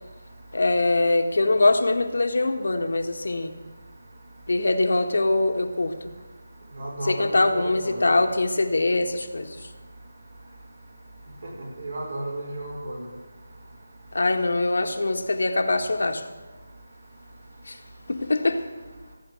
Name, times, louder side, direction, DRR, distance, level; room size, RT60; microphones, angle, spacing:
voice 1, 0.5-3.5 4.5-5.9 7.0-9.6 14.1-16.2 17.7-17.8 18.1-18.6, left 2 dB, 75° left, 5 dB, 1.6 m, -23 dB
voice 2, 6.8-8.0 11.8-13.0, right 1 dB, 60° right, -1 dB, 5.3 m, -33 dB
16.0 x 8.0 x 7.7 m, 1.3 s
figure-of-eight pair, 170°, 0 cm